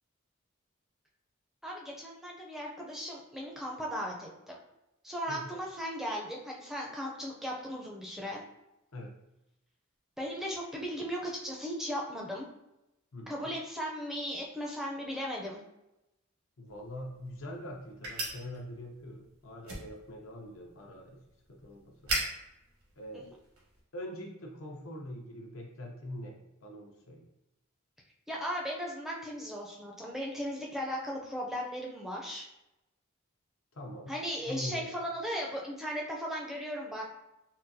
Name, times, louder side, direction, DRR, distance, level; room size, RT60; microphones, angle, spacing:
voice 1, 1.6-4.6 5.0-8.4 10.2-12.5 13.3-15.6 23.1-23.2 28.3-32.5 34.1-37.0, equal, ahead, -2 dB, 0.4 m, -37 dB
voice 2, 5.3-5.6 8.9-9.1 13.1-13.5 16.6-21.2 21.5-22.2 23.0-23.3 23.9-27.2 33.7-34.1 34.4-35.0, left 1 dB, 85° left, -1 dB, 0.7 m, -43 dB
sound 1, 16.7-23.8, right 2 dB, 85° right, 1.1 m, -41 dB
3.8 x 2.3 x 2.6 m, 0.91 s
head